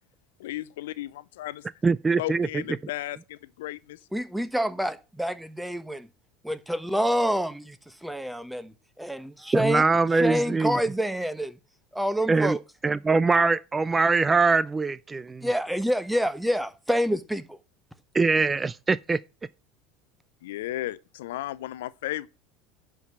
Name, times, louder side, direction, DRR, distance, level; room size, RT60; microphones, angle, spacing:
voice 1, 0.4-1.6 2.2-4.0 20.4-22.3, left 15 dB, 75° left, 0.5 m, -34 dB
voice 2, 1.8-2.6 9.5-10.8 12.3-12.6 12.8-15.5 18.1-19.2, right 4 dB, 20° right, 0.4 m, -23 dB
voice 3, 4.1-6.1 6.4-9.8 10.1-11.6 11.9-12.6 15.4-17.6, equal, 5° right, 1.2 m, -27 dB
10.5 x 4.9 x 7.3 m
hypercardioid pair, 75°, 0 cm